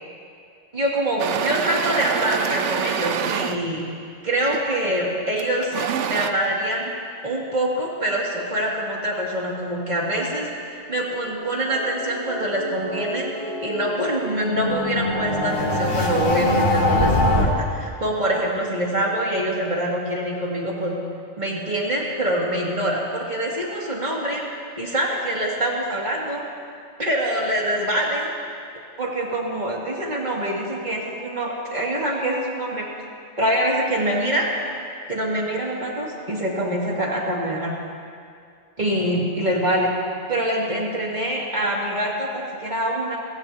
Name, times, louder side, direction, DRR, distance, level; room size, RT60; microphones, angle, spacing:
voice 1, 0.7-3.9 4.2-5.7 6.1-6.9 7.2-13.3 13.6-21.0 21.4-24.4 24.8-26.4 27.0-28.3 29.0-32.9 33.4-34.5 35.1-37.7 38.8-39.9 40.3-43.2, right 1 dB, 40° right, -3 dB, 2.6 m, -25 dB
sound 1, 1.2-3.6 4.5-4.7 5.4-6.3, right 8 dB, 80° right, 1.0 m, -25 dB
sound 2, 11.3-17.4, left 1 dB, 45° left, 1.9 m, -24 dB
26.5 x 17.0 x 2.8 m, 2.3 s
omnidirectional pair, 1.2 m